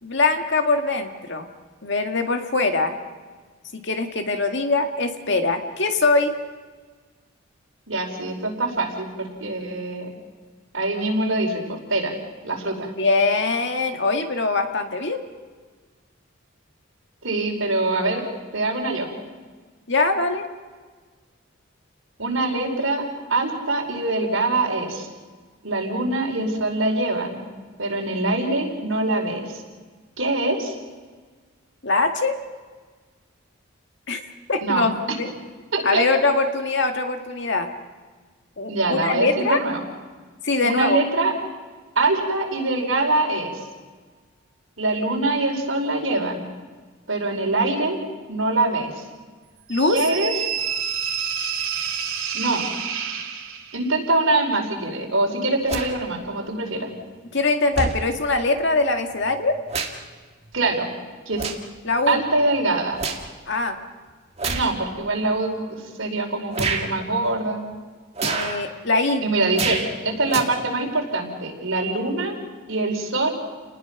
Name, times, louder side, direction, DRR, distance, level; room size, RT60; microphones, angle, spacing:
voice 1, 0.0-1.5 1.8-2.9 3.7-6.3 13.0-15.2 19.9-20.5 31.8-32.3 34.1-34.2 34.5-35.3 35.8-37.7 38.6-39.6 40.4-41.0 49.7-50.0 57.3-59.5 61.8-62.2 63.5-63.7 68.2-69.2, left 3 dB, 60° left, 5 dB, 2.0 m, -22 dB
voice 2, 7.9-10.1 10.7-12.1 12.4-12.9 17.2-18.2 18.5-19.1 22.2-23.0 23.3-25.1 25.6-27.4 27.8-29.6 30.2-30.7 34.6-34.9 35.7-36.0 38.7-39.8 40.6-41.3 41.9-43.6 44.8-46.5 47.1-48.0 48.3-49.0 49.9-50.3 52.3-52.7 53.7-56.9 60.5-60.9 61.2-61.5 62.1-63.0 64.5-67.6 69.2-72.3 72.7-73.3, right 2 dB, 70° right, 1 dB, 5.0 m, -24 dB
sound 1, 49.7-53.9, right 7 dB, 85° right, 2.3 m, -28 dB
sound 2, 55.7-55.9 57.0-57.1 57.7-58.0 59.2-60.1 60.5-60.7 61.3-61.7 62.2-63.3 64.4-64.7 65.4-65.5 66.5-66.9 68.1-68.6 69.5-69.9 70.3-70.4, right 4 dB, 30° right, 2.1 m, -27 dB
30.0 x 20.0 x 6.0 m, 1.4 s
head